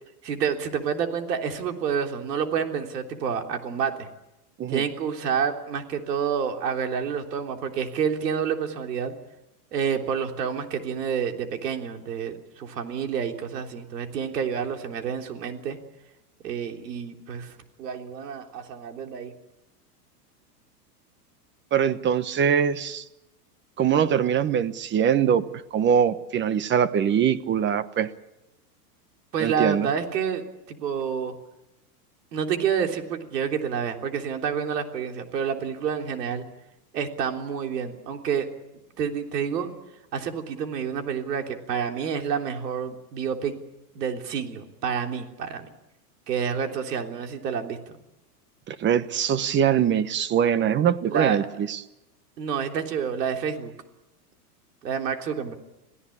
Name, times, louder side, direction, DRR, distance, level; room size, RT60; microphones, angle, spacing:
voice 1, 0.2-4.1 4.7-9.1 9.7-15.8 16.4-19.3 29.3-31.4 32.3-36.5 36.9-38.5 39.0-39.7 40.1-43.6 44.0-45.7 46.3-47.8 51.1-51.5 52.4-53.7 54.8-55.5, right 7 dB, 85° right, 4 dB, 3.5 m, -28 dB
voice 2, 21.7-23.0 23.8-25.4 25.7-28.1 29.4-29.9 48.7-51.8, right 8 dB, 25° right, 14 dB, 1.0 m, -22 dB
27.5 x 16.5 x 8.7 m, 0.93 s
supercardioid pair, 135°, 47 cm